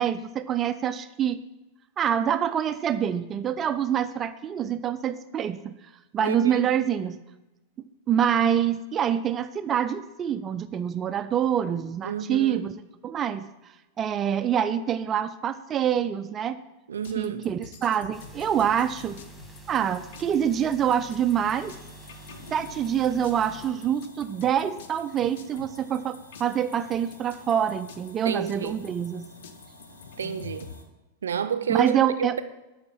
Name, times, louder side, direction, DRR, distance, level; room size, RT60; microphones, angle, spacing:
voice 1, 0.0-1.4 2.0-5.7 6.1-7.2 8.1-13.5 14.0-16.6 17.2-19.2 19.7-21.7 22.5-29.3 31.7-32.4, right 9 dB, 25° right, 0.4 m, -26 dB
voice 2, 6.2-6.7 12.0-12.7 16.9-17.5 28.2-28.8 30.2-30.7 31.2-32.4, right 7 dB, 65° right, 0.6 m, -30 dB
sound 1, 17.0-30.7, left 7 dB, 55° left, 0.8 m, -47 dB
sound 2, 18.1-23.7, right 3 dB, 10° left, 2.1 m, -47 dB
sound 3, 21.4-30.8, left 2 dB, 70° left, 1.5 m, -50 dB
11.5 x 4.3 x 7.3 m
figure-of-eight pair, 90°, 0 cm